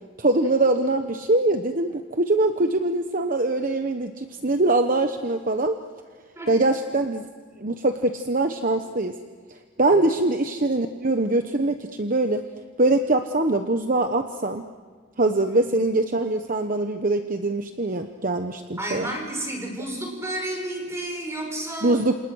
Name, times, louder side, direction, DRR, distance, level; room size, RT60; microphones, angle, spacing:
voice 1, 0.2-5.8 6.5-7.2 7.6-9.1 9.8-12.4 12.8-14.6 15.2-19.1 21.8-22.1, right 2 dB, 40° right, 6 dB, 1.1 m, -23 dB
voice 2, 18.8-22.0, right 1 dB, 15° right, 2 dB, 5.8 m, -31 dB
28.5 x 28.0 x 6.4 m, 1.5 s
head